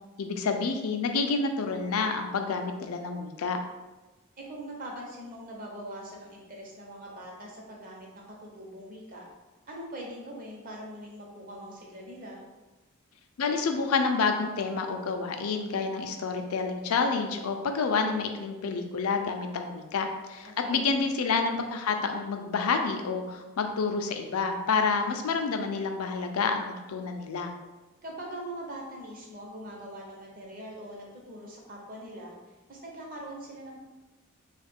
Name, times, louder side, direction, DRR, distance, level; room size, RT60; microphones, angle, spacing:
voice 1, 0.2-3.6 13.4-27.5, left 4 dB, 80° left, 5 dB, 0.4 m, -29 dB
voice 2, 4.5-9.3 9.7-12.4 20.6-20.9 28.0-33.8, right 1 dB, 40° right, -2 dB, 0.7 m, -42 dB
3.5 x 2.4 x 3.4 m, 1.1 s
head